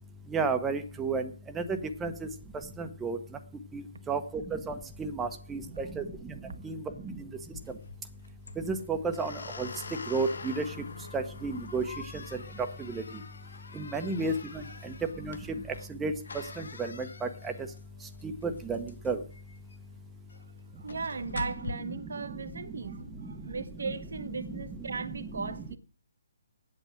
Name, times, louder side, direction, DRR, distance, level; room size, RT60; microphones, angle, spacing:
voice 1, 0.3-1.2 2.0-2.1 3.0-3.2 4.1-4.2 4.7-4.8 5.0-5.6 6.0-6.1 8.7-9.3 9.6-9.7 10.1-10.3 10.6-10.7 11.1-11.8 13.8-14.3 15.2-15.3 16.0-16.1 18.7-18.8 19.1-19.2, right 4 dB, 10° right, 0.8 m, -30 dB
sound 1, 7.4-21.7, left 4 dB, 65° left, 1.6 m, -45 dB
voice 2, 20.8-25.8, right 4 dB, 65° right, 0.9 m, -37 dB
8.6 x 8.2 x 7.6 m
figure-of-eight pair, 135°, 0 cm